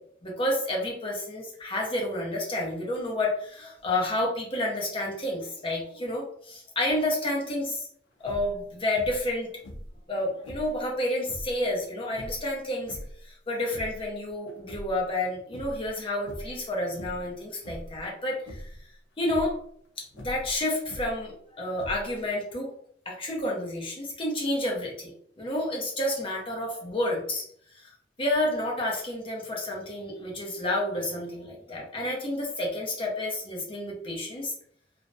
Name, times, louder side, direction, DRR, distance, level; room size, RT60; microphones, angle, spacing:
voice 1, 0.2-7.9 8.2-9.5 10.1-18.7 19.2-19.6 20.0-22.7 23.1-25.1 25.4-27.4 27.7-34.5, left 1 dB, 30° left, -2 dB, 0.6 m, -30 dB
sound 1, 8.2-8.6 9.0-9.3 9.6-10.8 11.2-11.6 12.1-13.2 13.6-14.1 14.5-15.2 15.5-15.9 16.2-16.6 17.0-17.3 17.6-18.0 18.4-18.8 19.2-19.5 20.1-21.3 21.7-22.3, equal, 80° left, 0.5 m, -41 dB
2.4 x 2.0 x 2.5 m, 0.64 s
head